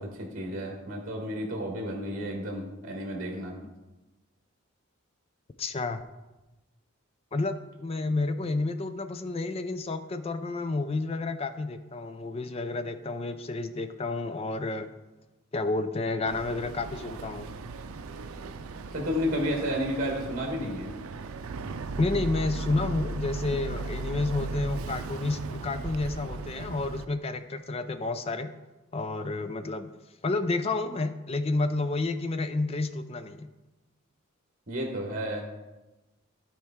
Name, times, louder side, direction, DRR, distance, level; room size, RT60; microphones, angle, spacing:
voice 1, 0.0-3.6 18.9-20.9 34.7-35.6, equal, 40° right, 1 dB, 1.3 m, -32 dB
voice 2, 5.6-6.0 7.3-14.9 15.5-17.5 22.0-28.5 28.9-29.9 30.2-33.5, left 3 dB, 30° left, 10 dB, 0.4 m, -30 dB
Boat Water vehicle, 16.3-27.0, right 3 dB, 90° right, 0.5 m, -37 dB
12.0 x 4.4 x 3.6 m, 1.1 s
head